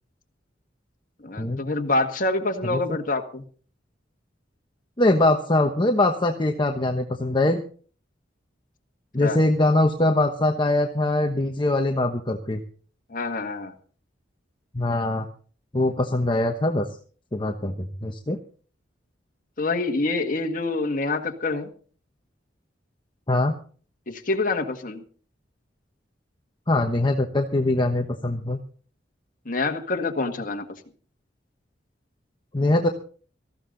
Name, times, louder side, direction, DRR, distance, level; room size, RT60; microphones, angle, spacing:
voice 1, 1.2-3.4 9.2-9.4 13.1-13.7 19.6-21.7 24.1-25.0 29.5-30.7, left 3 dB, 45° left, 3 dB, 1.8 m, -26 dB
voice 2, 5.0-7.6 9.1-12.6 14.7-15.3 15.7-16.9 17.3-17.7 18.0-18.4 23.3-23.5 26.7-28.6 32.5-32.9, left 2 dB, 25° left, 4 dB, 1.1 m, -22 dB
18.5 x 14.5 x 3.9 m, 0.43 s
head